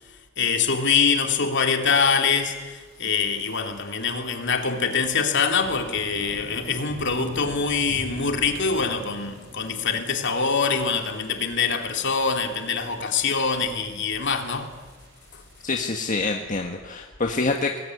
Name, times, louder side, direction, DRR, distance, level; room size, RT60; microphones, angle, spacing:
voice 1, 0.4-14.7, left 5 dB, 60° left, 2.7 m, -24 dB
sound 1, 2.4-16.2, equal, 55° right, 6.6 m, -45 dB
voice 2, 15.6-17.8, left 3 dB, 40° left, 1.6 m, -26 dB
21.0 x 20.5 x 9.8 m
head